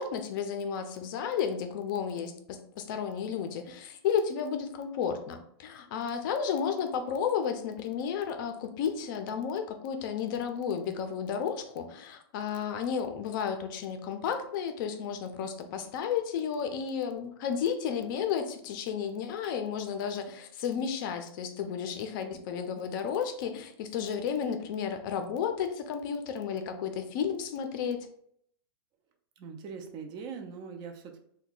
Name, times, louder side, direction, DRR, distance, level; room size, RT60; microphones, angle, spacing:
voice 1, 0.0-28.1, left 7 dB, 50° left, 7 dB, 0.5 m, -32 dB
voice 2, 29.4-31.2, right 6 dB, 30° right, 4 dB, 0.4 m, -41 dB
2.8 x 2.2 x 3.8 m, 0.67 s
supercardioid pair, 150°, 14 cm